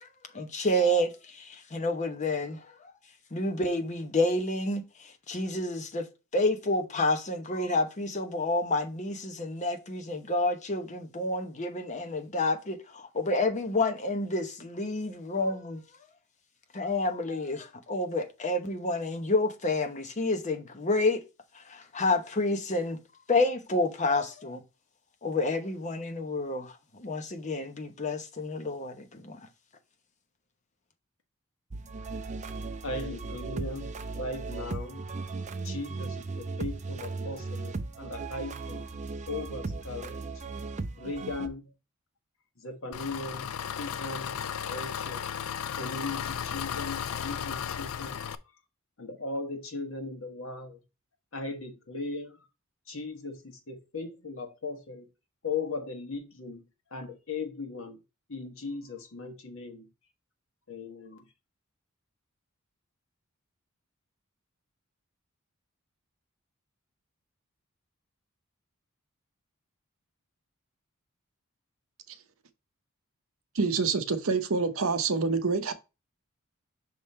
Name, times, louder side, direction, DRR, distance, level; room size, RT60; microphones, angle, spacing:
voice 1, 0.3-2.6 3.3-4.8 5.3-6.1 6.3-15.8 16.7-21.2 21.5-23.0 23.3-24.6 25.2-29.4, left 2 dB, 35° left, 0.9 m, -29 dB
sound 1, 31.7-41.5, right 3 dB, 35° right, 0.5 m, -37 dB
voice 2, 32.8-35.1 35.6-38.9 39.3-40.2 41.0-41.7 42.6-45.3 45.7-48.2 49.0-50.8 51.3-52.4 52.9-55.1 55.4-56.6 56.9-58.0 58.3-59.9 60.7-61.3, left 3 dB, 65° left, 1.4 m, -38 dB
Engine, 42.9-48.4, left 8 dB, 80° left, 0.5 m, -35 dB
voice 3, 73.5-75.7, right 4 dB, 65° right, 0.8 m, -27 dB
6.1 x 3.6 x 4.2 m
head